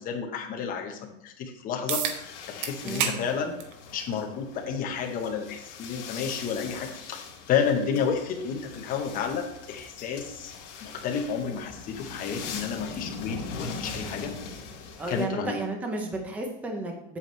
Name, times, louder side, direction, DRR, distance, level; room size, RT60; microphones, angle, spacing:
voice 1, 0.0-3.5 3.9-10.5 10.8-14.3 15.1-15.6, left 6 dB, 20° left, 3 dB, 0.9 m, -31 dB
sound 1, 1.9-2.2 2.6-3.2 3.6-3.7 4.8-4.9 9.8-9.9, right 8 dB, 40° right, 0.9 m, -29 dB
sound 2, 2.1-15.2, left 5 dB, 60° left, 2.2 m, -41 dB
voice 2, 2.8-3.3 15.0-17.2, right 2 dB, 5° right, 3 dB, 0.5 m, -33 dB
8.3 x 7.3 x 3.1 m, 0.86 s
supercardioid pair, 165°, 39 cm